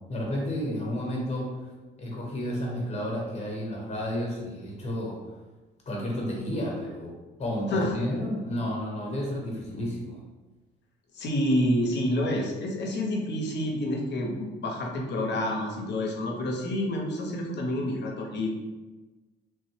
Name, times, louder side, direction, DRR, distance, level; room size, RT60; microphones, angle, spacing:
voice 1, 0.1-1.7 2.0-5.2 5.9-7.1 7.4-10.2, equal, 35° left, -2 dB, 0.9 m, -31 dB
voice 2, 11.1-18.5, left 1 dB, 60° left, 1 dB, 0.7 m, -28 dB
3.2 x 2.0 x 3.1 m, 1.2 s
cardioid pair, 90°, 20 cm